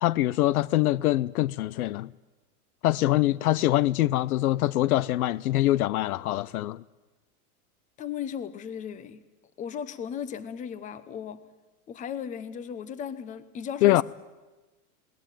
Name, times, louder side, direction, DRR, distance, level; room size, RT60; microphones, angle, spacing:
voice 1, 0.0-2.1 2.8-6.8 13.8-14.0, left 15 dB, 70° left, 0.6 m, -24 dB
voice 2, 8.0-9.2 9.6-11.4 11.9-14.0, left 8 dB, 15° left, 0.9 m, -36 dB
20.5 x 18.0 x 9.1 m
supercardioid pair, 150°, 45 cm